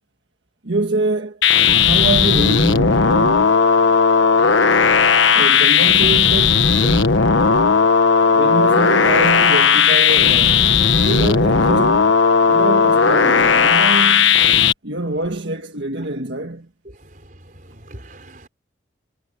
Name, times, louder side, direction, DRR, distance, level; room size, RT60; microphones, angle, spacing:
voice 1, 0.6-1.4 1.8-3.6 5.3-7.3 8.3-10.6 11.0-12.1 12.5-14.5 14.8-16.7, right 2 dB, 70° right, 1.7 m, -25 dB
sound 1, 1.4-14.7, left 6 dB, 85° left, 1.3 m, -15 dB
voice 2, 16.8-18.5, right 1 dB, 45° right, 4.9 m, -42 dB
head